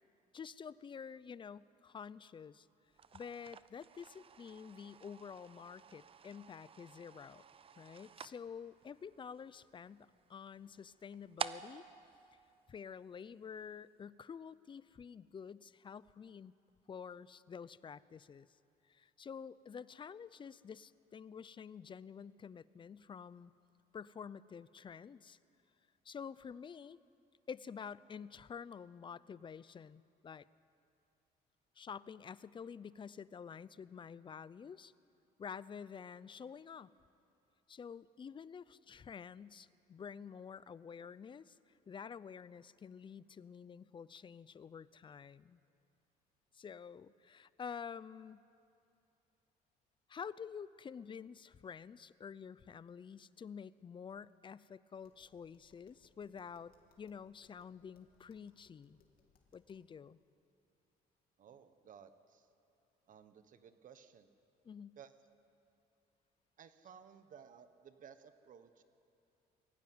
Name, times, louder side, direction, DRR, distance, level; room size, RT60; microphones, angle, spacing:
voice 1, 0.3-2.7 3.1-7.4 7.8-11.8 12.7-16.5 16.9-18.5 18.9-23.5 23.9-25.4 26.0-27.0 27.5-30.5 31.8-34.9 35.4-36.9 37.7-41.6 41.9-45.6 46.5-48.4 50.1-59.0 59.5-60.2 64.6-65.0, left 6 dB, 30° left, 18 dB, 0.5 m, -49 dB
sound 1, 2.9-13.3, right 7 dB, 35° right, 0.6 m, -50 dB
Tap, 54.9-59.9, left 5 dB, 60° left, 3.0 m, -72 dB
voice 2, 61.4-62.5 63.1-64.3 65.0-65.1 66.6-68.8, right 7 dB, 50° right, 11 dB, 1.3 m, -57 dB
22.5 x 16.0 x 9.5 m, 2.6 s
cardioid pair, 110°, 17 cm